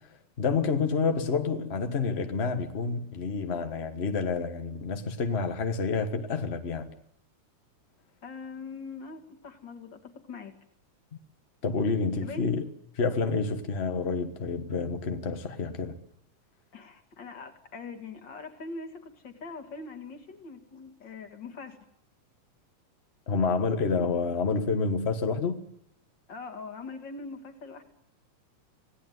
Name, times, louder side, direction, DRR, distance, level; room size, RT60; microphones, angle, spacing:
voice 1, 0.4-6.9 11.6-12.6 13.0-16.0 23.3-25.6, left 4 dB, 60° left, 0.6 m, -28 dB
voice 2, 8.2-10.5 12.2-12.5 16.7-21.8 26.3-27.8, left 4 dB, 40° left, 2.4 m, -42 dB
26.5 x 17.5 x 9.4 m
omnidirectional pair, 3.4 m